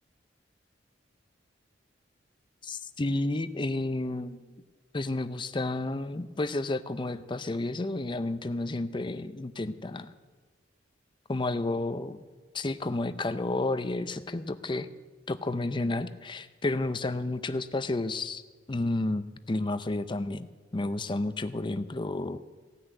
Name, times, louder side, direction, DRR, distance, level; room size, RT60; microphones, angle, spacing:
voice 1, 2.6-4.6 4.9-10.1 11.3-12.2 12.5-14.9 15.3-18.4 18.7-20.5 20.7-22.4, left 2 dB, 25° left, 12 dB, 0.6 m, -31 dB
16.5 x 6.3 x 9.2 m, 1.4 s
head